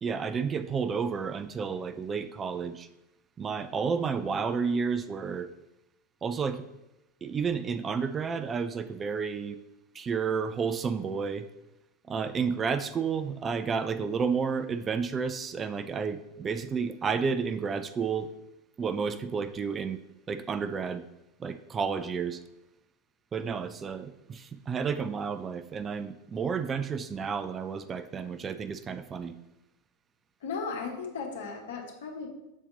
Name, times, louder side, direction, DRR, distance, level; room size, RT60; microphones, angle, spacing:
voice 1, 0.0-2.9 3.4-5.5 6.2-6.7 7.2-9.6 9.9-11.5 12.1-18.3 18.8-20.0 20.3-21.1 21.4-22.4 23.3-29.3, right 5 dB, 25° right, 11 dB, 0.4 m, -31 dB
voice 2, 30.4-32.3, left 5 dB, 60° left, 2 dB, 1.3 m, -36 dB
7.3 x 4.2 x 3.9 m, 0.93 s
figure-of-eight pair, 85°, 0 cm